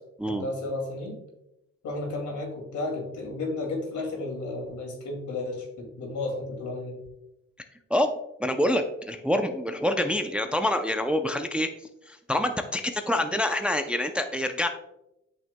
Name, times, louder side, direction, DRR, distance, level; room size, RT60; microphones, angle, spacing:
voice 1, 0.2-1.2 1.8-7.0, left 2 dB, 70° left, 1 dB, 2.5 m, -33 dB
voice 2, 8.4-11.7 12.1-14.7, left 1 dB, 5° right, 6 dB, 0.5 m, -26 dB
8.7 x 6.3 x 2.2 m, 0.89 s
cardioid pair, 90°, 30 cm